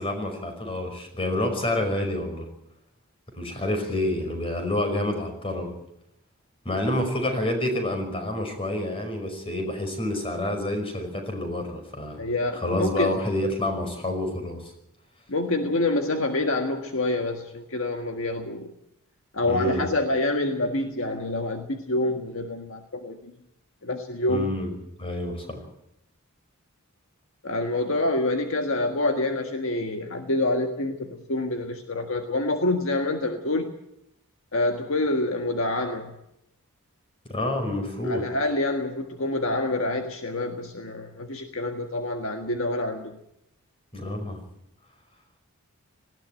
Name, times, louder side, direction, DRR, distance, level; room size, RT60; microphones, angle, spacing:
voice 1, 0.0-2.5 3.4-5.7 6.7-12.2 12.5-14.7 19.5-19.8 24.3-24.7 25.0-25.6 37.3-38.3 43.9-44.4, left 1 dB, 25° left, 5 dB, 5.3 m, -28 dB
voice 2, 12.2-13.2 15.3-18.7 19.3-23.2 23.8-24.5 27.4-33.8 34.5-36.1 38.0-43.1, left 2 dB, 60° left, 4 dB, 1.7 m, -27 dB
19.5 x 16.0 x 9.1 m, 0.80 s
head